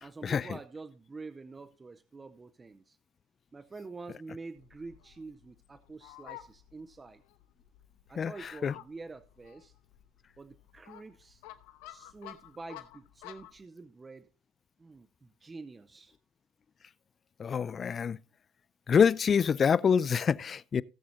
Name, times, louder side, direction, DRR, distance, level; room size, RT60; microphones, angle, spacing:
voice 1, 0.0-3.0 3.5-7.2 8.1-9.7 10.4-11.4 11.9-14.3 14.8-16.2, right 3 dB, 20° right, 0.6 m, -47 dB
Fowl, 4.6-13.6, left 14 dB, 85° left, 1.0 m, -52 dB
voice 2, 8.2-8.7 17.4-18.2 18.9-20.8, left 7 dB, 35° left, 0.4 m, -26 dB
18.0 x 7.5 x 2.7 m
supercardioid pair, 95°, 0 cm